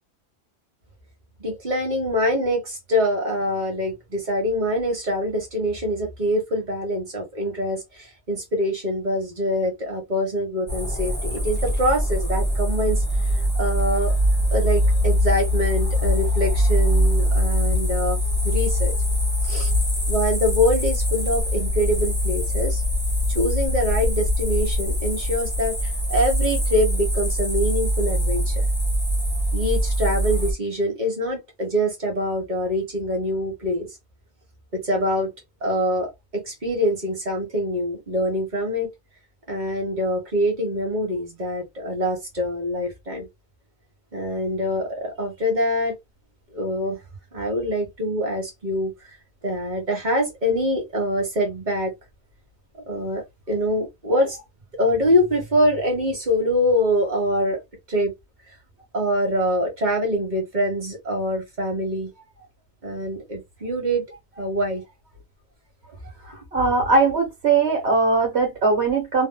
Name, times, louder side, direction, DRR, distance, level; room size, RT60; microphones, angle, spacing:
voice 1, 1.4-13.0 13.5-14.1 14.5-18.2 18.4-18.9 19.4-19.7 20.1-22.8 23.3-28.7 29.5-33.9 34.7-35.3 35.6-38.9 39.5-43.3 44.1-45.9 46.5-47.0 47.3-49.2 49.4-51.9 52.9-54.4 54.7-57.6 57.9-58.1 58.9-62.1 62.8-64.0 64.4-64.8, equal, 45° right, 1.5 m, -24 dB
sound 1, 10.7-30.5, equal, 10° left, 1.0 m, -22 dB
voice 2, 66.5-69.3, right 3 dB, 75° right, 1.7 m, -20 dB
3.2 x 2.7 x 2.3 m
omnidirectional pair, 1.1 m